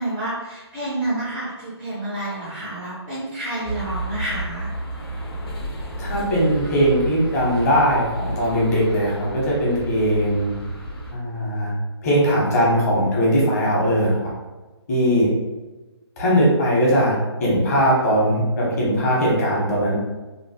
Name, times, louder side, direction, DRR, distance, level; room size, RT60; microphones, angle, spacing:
voice 1, 0.0-4.7, right 1 dB, 10° right, -8 dB, 0.4 m, -29 dB
sound 1, 3.6-11.1, right 1 dB, 55° left, 1.0 m, -31 dB
voice 2, 6.0-10.5 11.1-11.7 12.0-14.1 14.9-15.3 16.2-17.1 17.4-19.9, equal, 35° left, -5 dB, 1.0 m, -19 dB
3.0 x 2.4 x 2.8 m, 1.2 s
hypercardioid pair, 155°, 14 cm